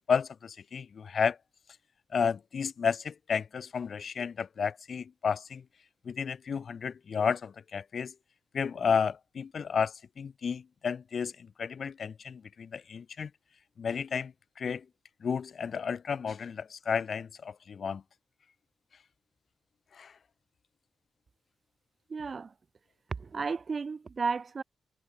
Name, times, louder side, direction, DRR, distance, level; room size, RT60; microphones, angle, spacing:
voice 1, 0.1-1.4 2.1-5.6 6.0-8.1 8.5-13.3 13.8-14.8 15.2-18.0 19.9-20.1, left 6 dB, 65° left, 0.5 m, -32 dB
voice 2, 22.1-22.5 23.2-24.6, right 5 dB, 55° right, 3.9 m, -33 dB
supercardioid pair, 50°, 0 cm